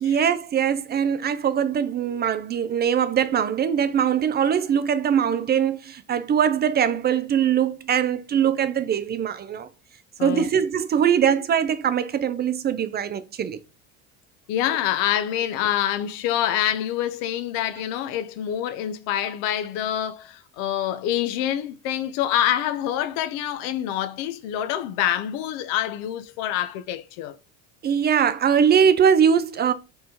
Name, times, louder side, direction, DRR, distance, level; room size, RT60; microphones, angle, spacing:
voice 1, 0.0-9.7 10.2-13.6 27.8-29.7, right 8 dB, 30° right, 0.4 m, -22 dB
voice 2, 14.5-27.4, left 11 dB, 70° left, 0.6 m, -26 dB
4.3 x 3.6 x 2.8 m
hypercardioid pair, 80°, 35 cm